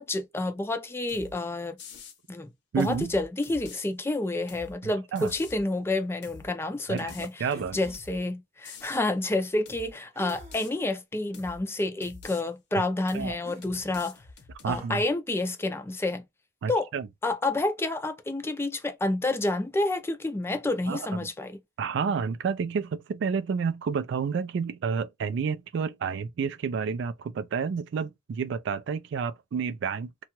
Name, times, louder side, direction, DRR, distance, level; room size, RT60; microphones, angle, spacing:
voice 1, 0.0-1.8 2.3-2.5 2.8-7.3 7.7-14.2 14.7-16.3 16.7-16.9 17.2-21.6, left 2 dB, 15° left, 0.4 m, -29 dB
sound 1, 1.1-1.4 1.8-2.2 2.8-3.9 4.5-4.8 5.2-5.6 6.2-6.5 7.0-8.2 8.6-9.0 9.7-9.9 10.3-10.7 11.3-11.6 12.0-12.4 13.1-13.4 13.6-14.8, left 4 dB, 60° left, 0.7 m, -46 dB
voice 2, 2.7-3.1 5.1-5.3 6.9-7.8 13.1-13.4 14.6-15.0 16.6-17.1 20.9-21.3 21.8-30.1, right 6 dB, 65° right, 0.3 m, -30 dB
sound 2, 7.5-8.0 10.1-10.8 11.5-11.6 13.4-13.6 14.6-14.9, right 3 dB, 35° right, 0.8 m, -46 dB
2.8 x 2.3 x 2.9 m
head